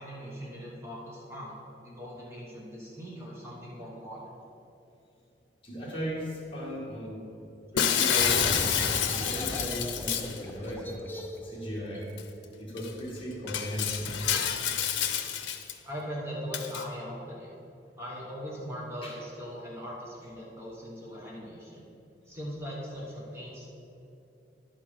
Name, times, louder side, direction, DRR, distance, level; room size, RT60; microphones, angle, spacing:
voice 1, 0.0-1.6 1.8-4.2 11.9-12.1 15.8-17.5 18.0-21.9 22.3-23.7, equal, 15° right, -5 dB, 1.1 m, -40 dB
voice 2, 5.6-7.2 7.7-8.7 9.1-11.1 11.4-12.1 12.6-14.2 19.0-19.1, equal, 30° left, -4 dB, 1.7 m, -36 dB
Shatter, 7.8-10.4 12.2-12.3 12.8-12.9 13.5-15.7 16.5-16.8, left 8 dB, 90° left, 0.6 m, -28 dB
sound 1, 8.1-13.5, left 1 dB, 10° left, 0.5 m, -39 dB
10.5 x 4.7 x 5.8 m, 2.8 s
head